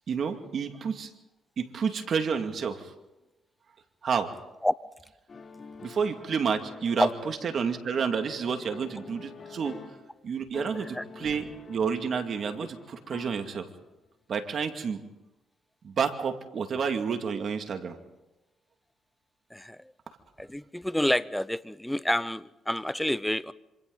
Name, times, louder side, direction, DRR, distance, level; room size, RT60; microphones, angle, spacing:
voice 1, 0.1-1.1 1.6-2.8 4.0-4.3 5.8-9.8 10.2-13.7 14.3-15.0 15.8-18.0, right 6 dB, 55° right, 6 dB, 2.2 m, -30 dB
sound 1, 5.3-10.1 10.5-13.9, left 4 dB, 40° left, 3.6 m, -47 dB
voice 2, 19.5-19.8 20.4-23.5, left 1 dB, 5° left, 17 dB, 0.7 m, -28 dB
26.5 x 26.5 x 4.0 m, 0.98 s
cardioid pair, 90°, 0 cm